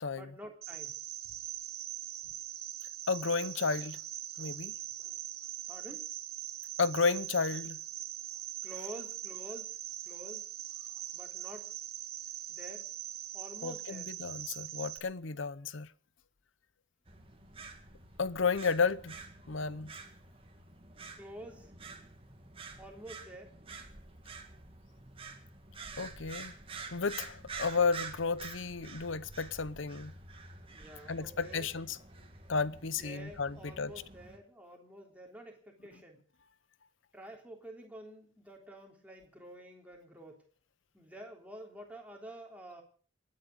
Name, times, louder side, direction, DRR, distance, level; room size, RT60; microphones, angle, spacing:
voice 1, 0.1-1.0 5.7-6.1 8.6-9.8 10.1-10.5 11.1-11.7 12.5-12.9 13.3-14.1 21.2-21.7 22.8-23.5 30.7-31.7 33.0-36.2 37.1-40.4 40.9-42.8, right 1 dB, 5° right, 3.4 m, -49 dB
Cricket, 0.6-15.0, right 13 dB, 50° right, 1.3 m, -42 dB
voice 2, 3.1-4.0 4.4-4.7 6.8-7.8 13.6-15.9 18.2-19.2 19.5-19.9 26.0-26.5 26.9-30.1 31.1-32.0 32.5-33.9, left 4 dB, 75° left, 0.8 m, -32 dB
sound 1, 17.0-34.4, right 4 dB, 25° right, 2.1 m, -48 dB
28.5 x 9.8 x 5.1 m
head